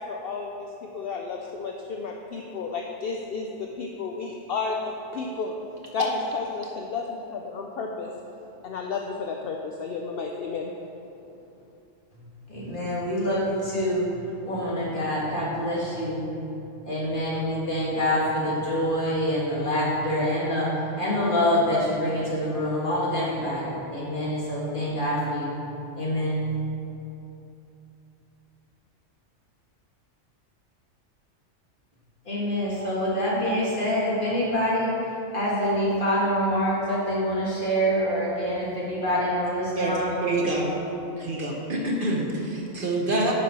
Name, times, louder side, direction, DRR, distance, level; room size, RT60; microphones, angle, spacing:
voice 1, 0.0-5.5 5.9-8.1 8.6-10.7, left 4 dB, 60° left, 1 dB, 0.7 m, -32 dB
voice 2, 12.5-16.3 16.8-25.6 26.0-26.4 32.3-40.8, equal, 45° left, -6 dB, 2.0 m, -26 dB
voice 3, 39.8-40.7 41.2-43.3, right 2 dB, 50° right, -2 dB, 1.1 m, -26 dB
10.5 x 5.6 x 4.2 m, 2.8 s
omnidirectional pair, 1.3 m